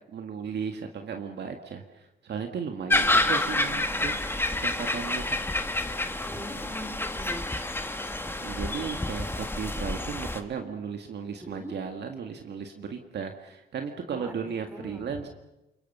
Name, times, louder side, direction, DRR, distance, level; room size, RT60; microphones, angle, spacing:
voice 1, 0.1-5.4 6.7-6.9 8.4-15.3, right 6 dB, 60° right, 4 dB, 1.8 m, -36 dB
sound 1, 2.9-10.4, left 2 dB, 10° left, 1.4 m, -28 dB
voice 2, 3.0-3.3 6.3-7.4 11.4-11.7 14.1-14.3 14.7-15.1, equal, 10° right, 5 dB, 4.4 m, -41 dB
28.5 x 23.0 x 5.5 m, 0.94 s
cardioid pair, 90°, 20 cm